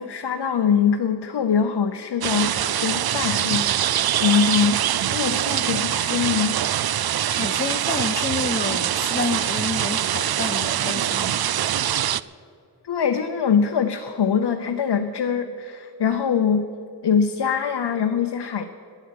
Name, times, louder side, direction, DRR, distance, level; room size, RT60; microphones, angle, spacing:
voice 1, 0.0-6.6 12.8-16.6 17.0-18.6, left 7 dB, 75° left, 0.9 m, -23 dB
sound 1, 2.2-12.2, right 10 dB, 65° right, 0.5 m, -23 dB
voice 2, 7.0-11.5, left 4 dB, 25° left, 0.5 m, -30 dB
12.5 x 10.5 x 9.4 m
wide cardioid pair, 95°, 41 cm